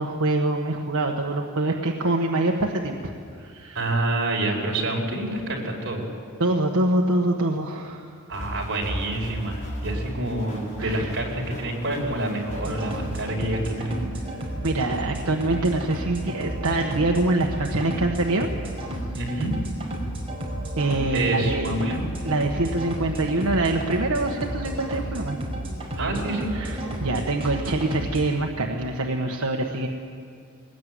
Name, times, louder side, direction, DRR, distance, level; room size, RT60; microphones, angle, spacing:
voice 1, 0.0-3.1 3.4-3.8 6.4-8.1 10.8-11.2 14.6-18.5 20.8-21.7 22.2-25.4 26.5-29.9, right 2 dB, 80° right, 1 dB, 1.4 m, -25 dB
voice 2, 3.8-6.1 8.3-14.0 19.1-19.5 21.1-22.0 26.0-26.5, right 2 dB, 55° right, -1 dB, 5.2 m, -27 dB
sound 1, 8.3-14.3, equal, 40° left, 4.8 m, -36 dB
sound 2, 12.5-28.2, right 1 dB, 25° right, 5.2 m, -32 dB
22.0 x 20.0 x 9.4 m, 2.3 s
head